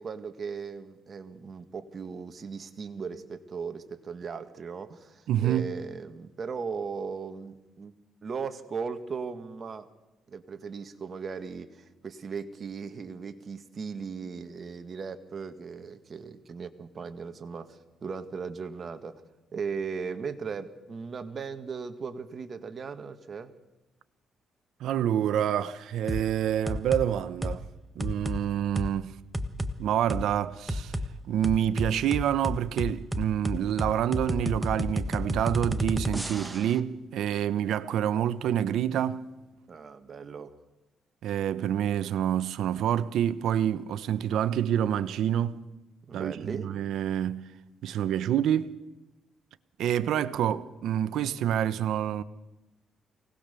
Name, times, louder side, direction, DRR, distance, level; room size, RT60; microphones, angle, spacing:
voice 1, 0.0-7.9 8.2-9.9 10.3-19.2 19.5-23.5 39.7-40.5 46.0-46.7, right 5 dB, 45° right, 1.9 m, -37 dB
voice 2, 5.3-5.7 24.8-27.6 27.9-29.1 29.8-31.0 31.3-39.3 41.2-45.6 46.1-47.5 47.8-48.7 49.8-52.2, right 10 dB, 80° right, 1.0 m, -27 dB
sound 1, 26.1-26.3 26.7-27.1 27.4-27.6 28.0-28.4 28.8-28.9 29.3-29.7 30.1-30.2 30.7-31.1 31.4-36.7, equal, 5° right, 1.4 m, -31 dB
24.0 x 18.5 x 6.9 m
cardioid pair, 90°, 0 cm